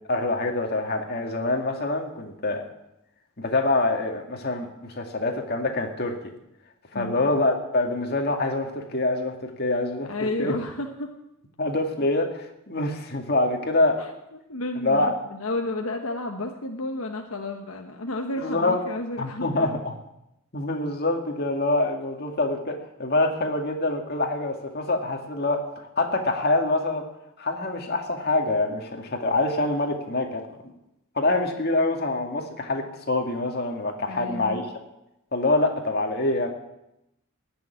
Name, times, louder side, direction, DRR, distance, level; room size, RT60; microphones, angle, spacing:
voice 1, 0.1-2.6 3.4-6.1 6.9-10.6 11.6-14.0 14.8-15.1 18.4-18.8 19.2-20.0 20.5-27.0 27.4-30.7 31.2-34.6 35.3-36.5, left 2 dB, 45° left, 3 dB, 2.2 m, -25 dB
voice 2, 6.9-7.3 10.1-11.1 12.0-12.1 14.0-19.7 34.1-34.6, left 2 dB, 75° left, 4 dB, 1.2 m, -32 dB
17.5 x 7.0 x 9.8 m, 0.87 s
head